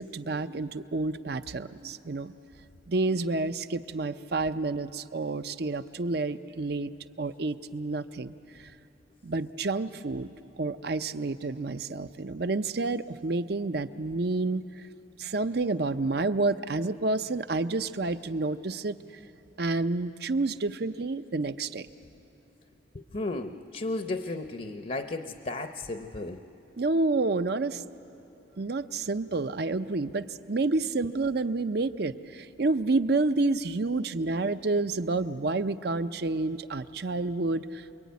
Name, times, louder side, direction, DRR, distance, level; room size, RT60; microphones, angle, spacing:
voice 1, 0.0-2.3 2.9-6.9 7.2-8.7 9.2-10.3 10.6-14.6 15.2-19.0 19.6-21.9 26.8-27.8 28.6-37.9, right 3 dB, 55° right, 12 dB, 0.6 m, -29 dB
voice 2, 22.9-26.4, left 2 dB, 40° left, 8 dB, 0.7 m, -34 dB
27.5 x 22.5 x 9.5 m, 2.9 s
head